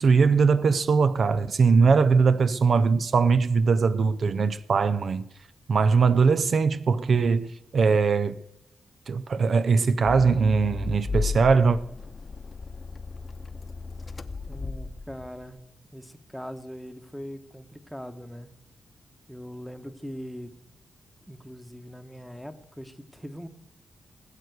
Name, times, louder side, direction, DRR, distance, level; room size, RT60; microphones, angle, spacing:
voice 1, 0.0-5.3 5.7-8.4 9.1-11.8, right 5 dB, 55° right, 0.4 m, -21 dB
Accelerating revving vroom, 10.1-15.5, left 4 dB, 35° left, 0.8 m, -35 dB
voice 2, 14.5-15.6 15.9-18.5 19.3-20.5 21.3-23.5, equal, ahead, 1.1 m, -41 dB
19.5 x 7.9 x 7.9 m
wide cardioid pair, 105°, 0 cm